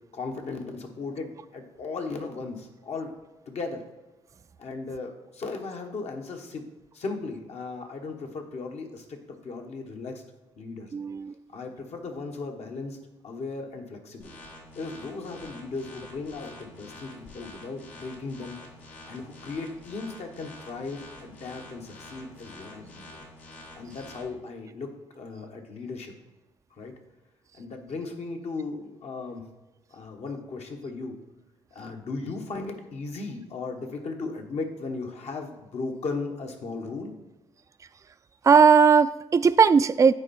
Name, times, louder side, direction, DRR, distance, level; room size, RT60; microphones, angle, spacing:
voice 1, 0.1-3.1 3.5-3.8 4.6-6.7 6.9-10.2 10.6-10.9 11.5-13.0 13.2-14.4 14.7-18.6 19.1-23.2 23.7-26.1 26.8-26.9 27.5-29.5 29.9-31.2 31.7-37.1, left 3 dB, 65° left, 3 dB, 1.3 m, -36 dB
voice 2, 10.9-11.3 38.4-40.1, right 6 dB, 25° right, 12 dB, 0.3 m, -18 dB
sound 1, 14.2-24.2, left 1 dB, 80° left, 1.8 m, -47 dB
8.7 x 4.6 x 4.3 m, 1.1 s
supercardioid pair, 55°, 12 cm